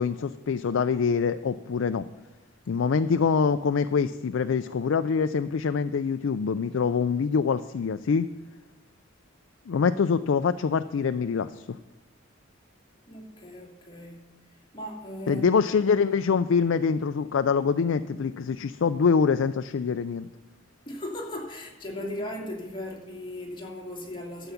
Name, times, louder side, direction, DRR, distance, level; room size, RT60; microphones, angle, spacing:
voice 1, 0.0-2.1 2.7-8.3 9.7-11.6 15.3-20.3, left 5 dB, 80° left, 10 dB, 0.4 m, -25 dB
voice 2, 13.1-15.5 20.8-24.5, left 1 dB, 25° left, -1 dB, 2.6 m, -37 dB
13.0 x 7.1 x 7.1 m, 1.1 s
head